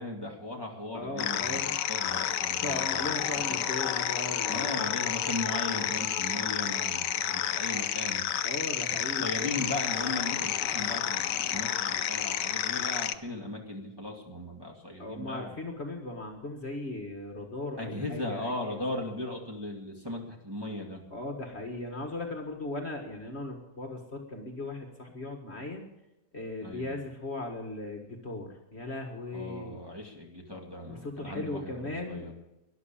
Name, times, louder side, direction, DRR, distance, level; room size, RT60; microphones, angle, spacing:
voice 1, 0.0-1.6 1.9-3.1 3.5-3.6 4.5-8.3 9.1-15.5 17.8-21.0 26.6-27.0 29.3-32.3, left 2 dB, 15° right, 0 dB, 2.2 m, -37 dB
voice 2, 0.9-1.7 2.6-4.8 8.4-9.7 15.0-18.5 21.1-25.9 26.3-29.8 30.9-32.3, left 2 dB, 40° left, 2 dB, 1.8 m, -38 dB
sound 1, 1.2-13.1, left 11 dB, 80° left, 1.3 m, -30 dB
13.5 x 11.0 x 8.6 m, 0.95 s
omnidirectional pair, 1.8 m